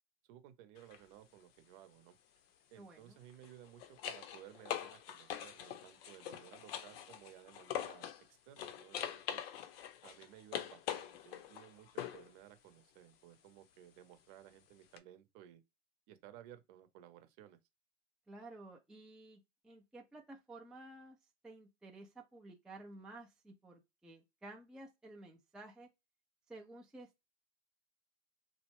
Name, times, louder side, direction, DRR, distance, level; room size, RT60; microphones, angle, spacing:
voice 1, 0.3-2.2 2.7-8.1 8.5-9.5 10.0-15.6 16.1-17.6, right 12 dB, 50° right, 0.8 m, -57 dB
sound 1, 0.8-1.0 3.3-8.2 8.6-12.3 15.0-15.1, left 10 dB, 55° left, 0.6 m, -44 dB
voice 2, 2.8-3.2 18.3-21.2 21.4-25.9 26.5-27.2, right 2 dB, ahead, 0.5 m, -53 dB
2.6 x 2.1 x 3.0 m
hypercardioid pair, 105°, 35 cm